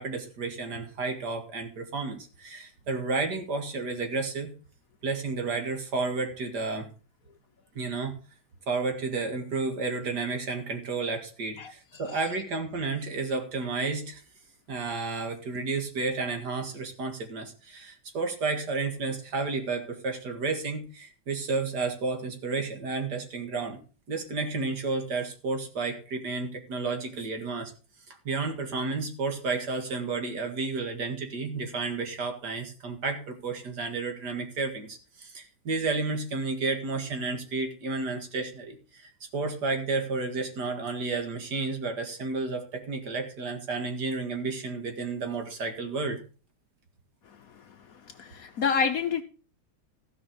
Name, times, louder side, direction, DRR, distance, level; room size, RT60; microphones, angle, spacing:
voice 1, 0.0-4.5 5.0-6.9 7.8-8.1 8.7-14.2 14.7-23.8 24.1-27.7 28.1-46.2, right 3 dB, 60° right, 2.3 m, -31 dB
voice 2, 48.2-49.2, left 6 dB, 60° left, 1.0 m, -27 dB
15.0 x 5.7 x 5.2 m
omnidirectional pair, 2.0 m